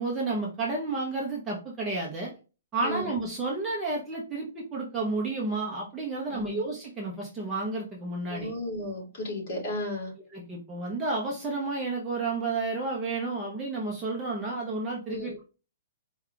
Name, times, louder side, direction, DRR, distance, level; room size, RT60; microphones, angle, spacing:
voice 1, 0.0-2.3 2.7-8.5 10.3-15.4, right 3 dB, 10° right, -3 dB, 0.7 m, -31 dB
voice 2, 8.3-10.1 15.1-15.3, left 1 dB, 35° left, -3 dB, 2.3 m, -34 dB
4.6 x 2.3 x 3.7 m, 0.33 s
hypercardioid pair, 170°, 0 cm